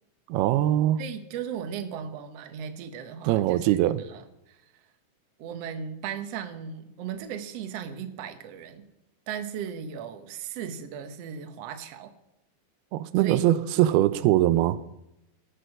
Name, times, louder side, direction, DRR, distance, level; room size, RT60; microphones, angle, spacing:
voice 1, 0.3-1.0 3.3-4.0 12.9-14.8, right 14 dB, 90° right, 2.6 m, -22 dB
voice 2, 1.0-4.8 5.4-8.9 9.3-12.1 13.2-13.9, right 8 dB, 75° right, 1.5 m, -37 dB
18.5 x 6.7 x 6.3 m
omnidirectional pair, 4.4 m